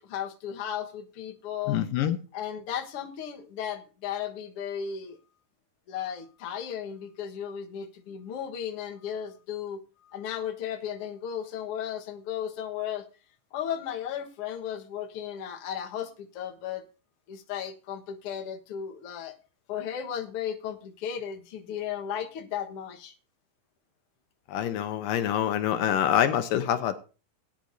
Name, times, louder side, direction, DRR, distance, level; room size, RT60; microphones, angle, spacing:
voice 1, 0.0-1.8 2.3-5.2 5.9-9.8 10.1-13.0 13.5-16.8 17.3-19.3 19.7-23.1, left 9 dB, 55° left, 2 dB, 1.8 m, -35 dB
voice 2, 1.7-2.2 24.5-27.0, left 10 dB, 75° left, 9 dB, 2.5 m, -26 dB
19.5 x 10.0 x 2.7 m, 0.34 s
omnidirectional pair, 4.0 m